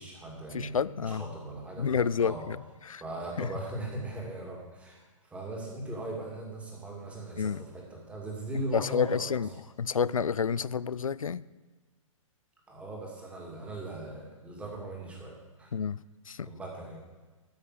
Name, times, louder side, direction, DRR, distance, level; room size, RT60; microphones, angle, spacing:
voice 1, 0.0-2.5 3.0-9.4 12.7-15.7 16.4-17.0, right 2 dB, 5° right, -1 dB, 2.3 m, -39 dB
voice 2, 0.5-1.2 1.8-3.0 3.4-3.5 7.4-7.6 8.5-9.5 9.8-11.4 15.7-16.5, left 6 dB, 75° left, 20 dB, 0.4 m, -30 dB
13.0 x 6.4 x 6.6 m, 1.3 s
figure-of-eight pair, 120°, 18 cm